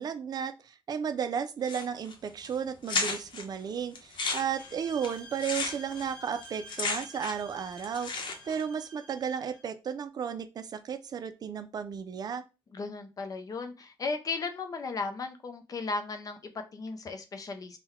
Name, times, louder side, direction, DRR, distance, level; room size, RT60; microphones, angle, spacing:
voice 1, 0.0-12.4, right 7 dB, 45° right, 10 dB, 0.4 m, -34 dB
sound 1, 1.6-2.1 2.4-2.5 2.9-3.4 4.0-7.5 7.8-8.6, left 4 dB, 55° left, 0.9 m, -33 dB
sound 2, 4.4-9.6, right 1 dB, 10° left, 0.9 m, -50 dB
voice 2, 12.7-17.8, left 3 dB, 40° left, 7 dB, 0.5 m, -36 dB
3.7 x 2.2 x 4.3 m, 0.29 s
wide cardioid pair, 150°, 9 cm